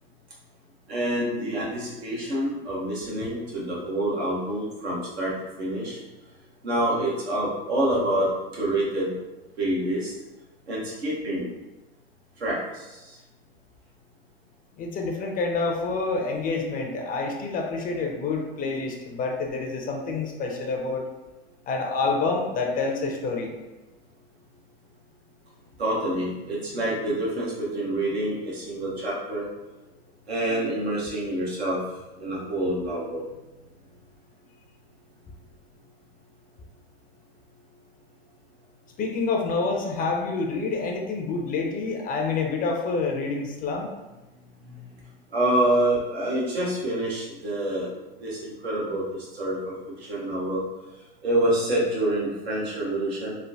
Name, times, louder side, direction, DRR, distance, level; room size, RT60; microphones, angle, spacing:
voice 1, 0.9-6.0 6.6-8.3 8.5-9.1 9.6-10.1 10.7-11.5 12.4-13.2 25.8-29.5 30.3-31.8 32.2-33.2 44.6-44.8 45.3-47.9 48.2-50.6 51.2-53.3, right 1 dB, 85° right, -5 dB, 1.0 m, -27 dB
voice 2, 14.8-21.1 21.7-23.6 39.0-43.9, left 4 dB, 30° left, 2 dB, 0.4 m, -27 dB
3.1 x 2.0 x 2.6 m, 1.1 s
hypercardioid pair, 85°, 31 cm